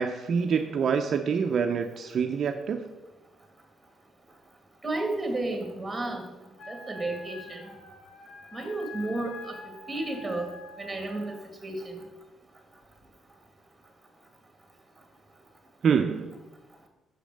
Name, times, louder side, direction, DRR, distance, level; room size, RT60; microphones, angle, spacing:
voice 1, 0.0-2.8 15.8-16.4, right 6 dB, 55° right, 5 dB, 0.5 m, -26 dB
voice 2, 4.8-6.2 6.7-7.6 8.5-10.5 10.8-11.4 11.6-12.0, right 2 dB, 15° right, 3 dB, 2.0 m, -32 dB
Wind instrument woodwind instrument, 6.6-11.5, left 2 dB, 85° left, 1.3 m, -46 dB
6.3 x 5.0 x 6.4 m, 1.1 s
cardioid pair, 90°, 0 cm